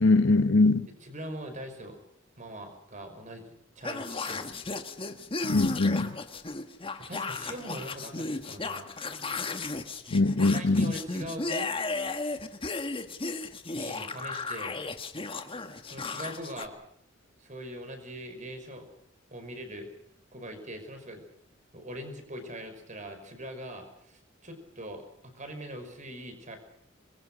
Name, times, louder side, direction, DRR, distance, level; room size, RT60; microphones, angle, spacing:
voice 1, 0.0-0.9 5.4-6.2 10.1-10.9, left 2 dB, 70° left, 1.0 m, -22 dB
voice 2, 1.0-2.0 2.4-4.5 7.0-8.9 10.4-11.7 13.7-14.8 15.9-16.7 17.4-18.9 19.3-19.9 20.3-21.2 21.7-26.6, equal, 40° right, 5.6 m, -42 dB
sound 1, 3.8-16.7, left 3 dB, 30° left, 1.5 m, -35 dB
26.0 x 22.0 x 6.4 m
head